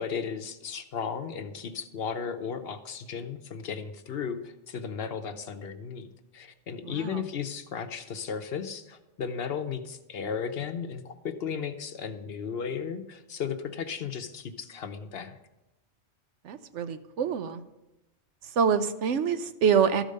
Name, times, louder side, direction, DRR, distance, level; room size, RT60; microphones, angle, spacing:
voice 1, 0.0-15.4, left 6 dB, 60° left, 8 dB, 0.9 m, -35 dB
voice 2, 6.8-7.2 16.4-17.6 18.5-20.0, right 7 dB, 80° right, 11 dB, 1.0 m, -26 dB
13.0 x 5.1 x 6.5 m, 0.96 s
omnidirectional pair, 1.2 m